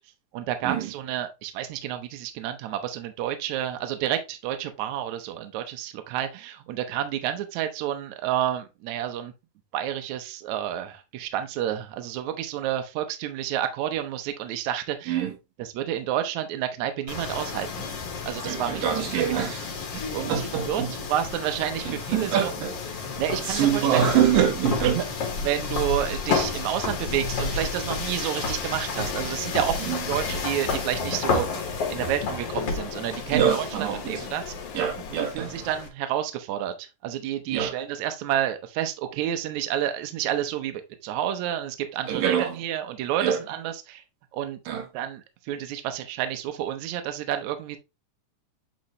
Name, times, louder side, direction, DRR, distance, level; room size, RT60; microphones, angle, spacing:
voice 1, 0.3-9.3 9.7-15.2 15.6-17.9 18.3-19.5 19.9-22.5 23.2-24.0 24.8-25.0 25.4-31.5 31.9-34.5 35.3-44.0 44.3-44.6 44.9-47.8, right 11 dB, 70° right, 2.0 m, -30 dB
sound 1, 17.1-35.9, left 4 dB, 55° left, 2.1 m, -31 dB
voice 2, 18.4-19.7 20.3-20.9 21.9-22.7 23.5-25.0 29.9-30.0 33.3-34.2 34.7-35.6 37.5-37.7 42.1-42.6 43.2-43.4 44.7-44.8, right 9 dB, 90° right, 2.9 m, -24 dB
sound 2, 29.0-35.4, left 8 dB, 70° left, 2.4 m, -41 dB
8.2 x 3.8 x 3.0 m
omnidirectional pair, 3.8 m